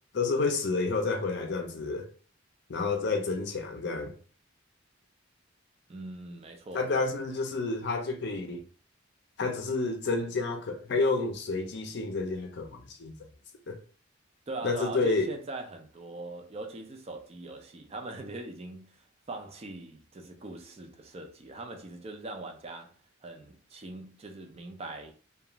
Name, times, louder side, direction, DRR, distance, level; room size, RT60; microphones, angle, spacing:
voice 1, 0.1-2.1 2.7-4.1 6.7-8.6 9.4-13.1 13.7-13.8 14.6-15.3, left 3 dB, 55° left, 0.5 m, -30 dB
voice 2, 5.9-6.8 14.5-22.9 23.2-25.1, right 2 dB, 30° right, 0.4 m, -41 dB
2.4 x 2.3 x 2.9 m
head